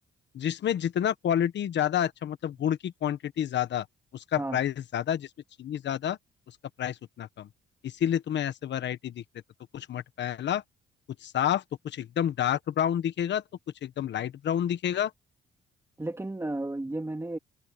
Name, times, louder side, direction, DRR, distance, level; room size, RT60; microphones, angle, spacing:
voice 1, 0.3-3.8 4.1-5.3 5.6-6.2 6.8-7.5 7.8-9.2 9.7-10.6 11.2-13.4 13.8-15.1, left 10 dB, 65° left, 1.3 m, -29 dB
voice 2, 16.0-17.4, right 2 dB, 15° right, 2.7 m, -33 dB
cardioid pair, 90°, 20 cm